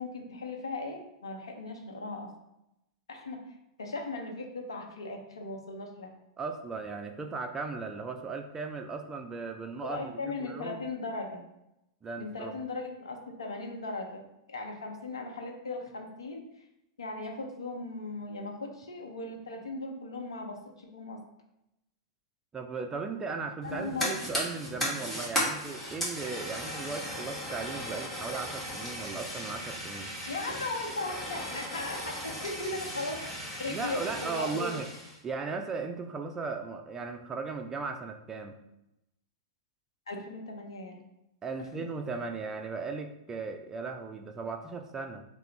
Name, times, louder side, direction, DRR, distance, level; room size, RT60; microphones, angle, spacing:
voice 1, 0.0-2.3 3.1-3.4 3.8-6.1 9.8-11.4 12.2-14.2 14.5-16.4 17.0-21.2 23.6-24.1 30.3-32.2 32.4-34.7 40.1-41.0 41.6-41.7, left 2 dB, 75° left, 2 dB, 0.7 m, -38 dB
voice 2, 6.4-10.8 12.0-12.5 22.5-30.1 33.7-34.9 35.2-38.6 41.4-45.2, right 4 dB, 20° right, 6 dB, 0.4 m, -37 dB
Fire, 23.6-35.2, equal, 5° left, 1.3 m, -36 dB
3.8 x 2.0 x 4.1 m, 0.87 s
figure-of-eight pair, 100°, 3 cm